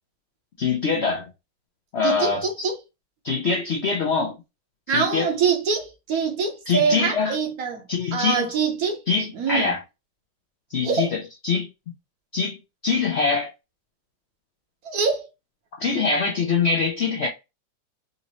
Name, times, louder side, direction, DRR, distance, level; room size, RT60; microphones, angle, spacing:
voice 1, 0.6-1.3 1.9-2.5 3.2-4.4 4.9-5.3 6.7-7.3 7.9-8.5 9.1-9.8 10.7-11.7 12.3-12.6 12.8-13.5 15.8-17.3, left 5 dB, 65° left, 0.6 m, -23 dB
voice 2, 2.0-2.8 4.9-7.8 8.1-9.0 9.3-9.7 10.8-11.1 14.8-15.3, right 5 dB, 60° right, 1.2 m, -24 dB
4.0 x 2.6 x 2.9 m
omnidirectional pair, 1.9 m